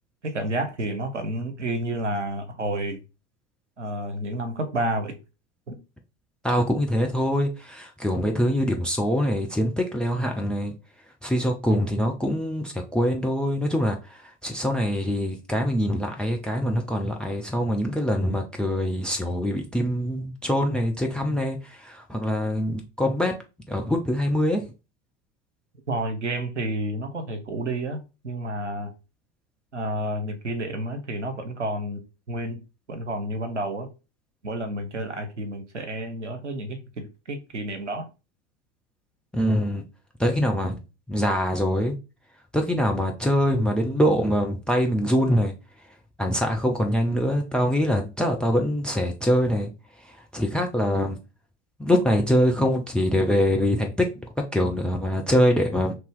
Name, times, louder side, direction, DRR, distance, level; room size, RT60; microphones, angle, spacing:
voice 1, 0.2-3.0 3.8-5.2 5.7-5.8 25.9-28.9 29.7-32.0 32.3-32.6 32.9-33.9 34.4-38.1, right 1 dB, 80° right, 0.9 m, -30 dB
voice 2, 6.4-10.7 11.2-14.0 14.4-23.3 23.7-24.6 39.3-39.8 40.2-40.8 41.1-41.9 42.5-45.5 46.2-49.7 50.3-51.2 51.8-54.1 54.5-55.9, equal, 5° left, 0.3 m, -24 dB
2.8 x 2.7 x 3.6 m
figure-of-eight pair, 80°, 35 cm